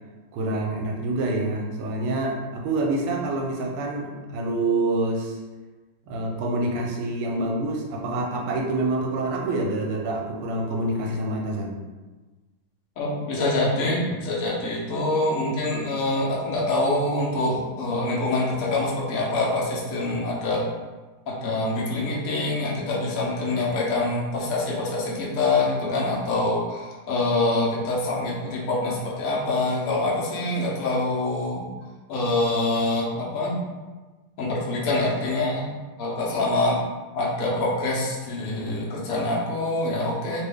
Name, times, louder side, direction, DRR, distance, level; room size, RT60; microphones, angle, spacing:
voice 1, 0.3-5.4 6.1-11.8, right 2 dB, 85° right, 0 dB, 1.5 m, -27 dB
voice 2, 13.0-20.6 21.3-31.6 32.1-33.6 34.4-35.7 36.0-36.8 37.1-40.4, left 2 dB, 60° left, -5 dB, 0.9 m, -25 dB
3.2 x 2.5 x 3.4 m, 1.2 s
omnidirectional pair, 2.3 m